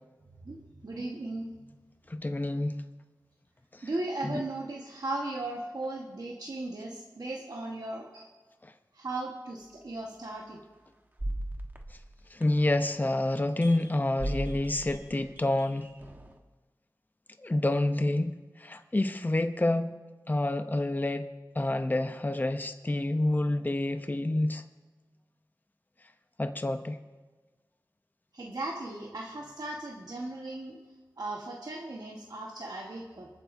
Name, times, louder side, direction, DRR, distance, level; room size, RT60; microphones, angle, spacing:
voice 1, 0.4-1.5 3.8-8.3 8.9-10.6 28.3-30.8 31.2-33.3, right 2 dB, 65° right, -1 dB, 1.3 m, -37 dB
voice 2, 2.1-2.8 4.2-4.4 12.3-15.9 17.4-19.9 20.3-21.3 21.6-24.6 26.4-27.0, left 1 dB, 25° left, 8 dB, 0.6 m, -28 dB
sound 1, 10.0-10.2 11.2-12.8 13.6-13.9 14.2-16.4, right 1 dB, 25° right, 1.2 m, -37 dB
27.5 x 9.4 x 2.6 m, 1.3 s
wide cardioid pair, 70°, 7 cm